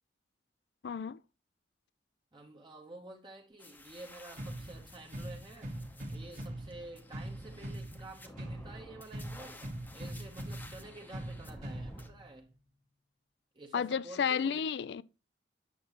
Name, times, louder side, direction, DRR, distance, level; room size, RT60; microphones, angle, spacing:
voice 1, 0.8-1.2 13.7-15.0, left 7 dB, 60° left, 0.4 m, -32 dB
voice 2, 2.3-5.8 6.1-12.5 13.5-14.6, right 2 dB, 25° right, 0.9 m, -50 dB
sound 1, 3.6-12.1, left 1 dB, 10° left, 0.7 m, -54 dB
sound 2, 4.4-12.4, right 1 dB, 45° right, 1.3 m, -43 dB
8.5 x 6.9 x 2.9 m
head